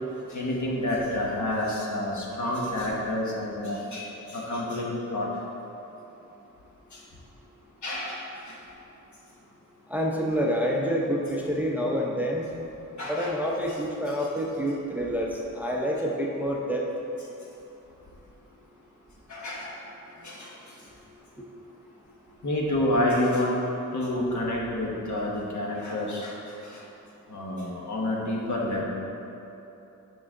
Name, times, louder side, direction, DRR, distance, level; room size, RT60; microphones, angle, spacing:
voice 1, 0.3-5.3 6.9-7.0 7.8-8.6 13.0-13.4 13.7-13.8 14.1-14.2 19.3-19.8 20.2-20.5 22.4-23.5 23.9-26.4 26.6-26.8 27.3-28.8, left 1 dB, 65° left, -3 dB, 1.3 m, -29 dB
voice 2, 9.9-12.4 13.1-16.9 22.1-22.3, equal, 5° right, -2 dB, 0.6 m, -28 dB
9.0 x 5.3 x 3.7 m, 3.0 s
wide cardioid pair, 150°, 32 cm